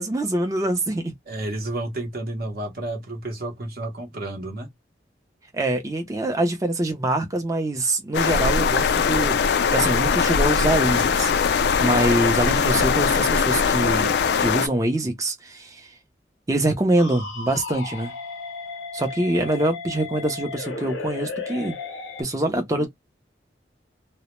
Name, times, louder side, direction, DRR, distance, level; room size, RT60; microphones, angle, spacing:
voice 1, 0.0-1.1 5.5-15.9 16.5-18.1 18.9-21.7 22.2-22.9, right 1 dB, 20° right, 0.5 m, -24 dB
voice 2, 1.3-4.7 22.5-22.9, right 1 dB, 55° right, 0.7 m, -31 dB
sound 1, 8.1-14.7, left 6 dB, 60° left, 0.3 m, -21 dB
sound 2, 17.0-22.2, left 4 dB, 90° left, 0.6 m, -34 dB
2.1 x 2.0 x 2.9 m
head